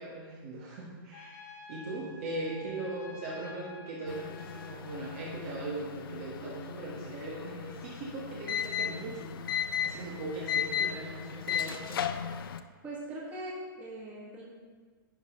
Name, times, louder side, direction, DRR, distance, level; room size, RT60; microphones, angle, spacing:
voice 1, 0.0-12.0, right 2 dB, 35° right, -4 dB, 1.3 m, -39 dB
Trumpet, 1.1-5.5, left 4 dB, 50° left, 1.1 m, -50 dB
sound 1, 4.1-12.6, left 9 dB, 75° left, 0.5 m, -36 dB
voice 2, 12.8-14.4, right 1 dB, 15° right, -5 dB, 1.8 m, -41 dB
10.5 x 4.0 x 5.2 m, 1.5 s
hypercardioid pair, 165°, 12 cm